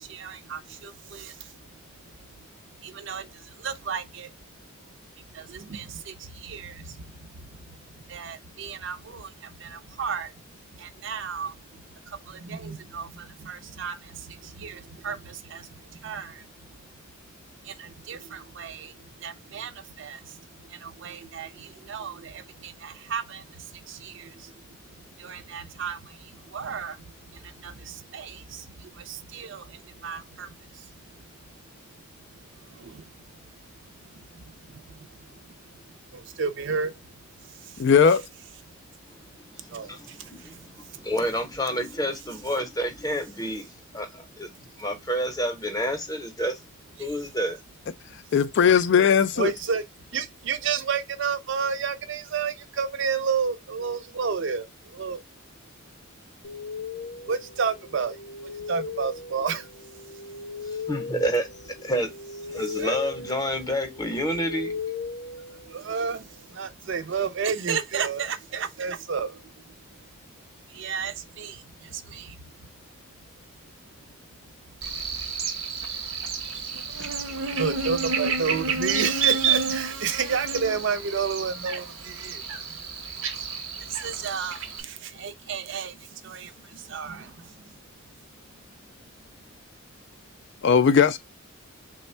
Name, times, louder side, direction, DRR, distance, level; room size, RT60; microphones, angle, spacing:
voice 1, 0.0-1.5 2.8-4.3 5.3-10.4 10.7-16.5 17.6-24.8 25.2-30.9 32.6-33.1 33.4-33.5 34.1-35.1 36.1-36.9 37.4-37.8 39.7-41.1 49.4-49.8 50.1-55.2 57.3-59.7 62.8-63.0 65.6-69.5 70.7-72.4 77.6-82.4 82.7-82.8 83.8-87.7, right 6 dB, 55° right, 0.4 m, -32 dB
voice 2, 37.8-38.3 48.3-49.5 90.6-91.2, left 7 dB, 55° left, 0.3 m, -18 dB
voice 3, 39.1-46.6 47.0-47.6 60.6-62.1 62.5-64.7 77.0-77.1, equal, 15° left, 0.7 m, -29 dB
sound 1, 56.4-66.1, left 5 dB, 90° left, 0.7 m, -38 dB
Buzz, 74.8-84.8, right 5 dB, 80° right, 0.8 m, -30 dB
3.3 x 2.1 x 4.2 m
head